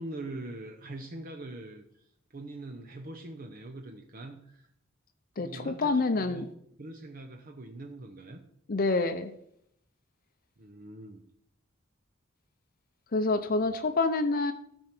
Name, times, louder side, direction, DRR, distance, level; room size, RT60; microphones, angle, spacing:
voice 1, 0.0-4.7 5.4-6.5 6.8-8.4 10.6-11.3 13.4-13.7, right 2 dB, 45° right, 4 dB, 0.8 m, -43 dB
voice 2, 5.4-6.4 8.7-9.3 13.1-14.5, left 3 dB, 45° left, 8 dB, 0.6 m, -27 dB
13.5 x 4.5 x 5.9 m, 0.73 s
head